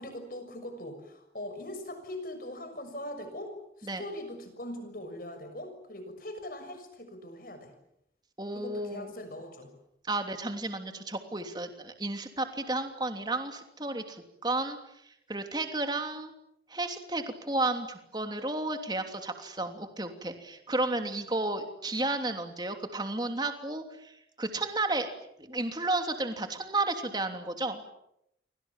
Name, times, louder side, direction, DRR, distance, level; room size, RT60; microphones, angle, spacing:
voice 1, 0.0-7.7 8.5-9.7, left 1 dB, 50° left, 8 dB, 6.5 m, -41 dB
voice 2, 8.4-9.1 10.1-14.8 15.3-16.3 16.7-25.1 25.4-27.8, right 2 dB, 25° right, 6 dB, 3.0 m, -32 dB
29.5 x 24.5 x 7.4 m, 0.78 s
head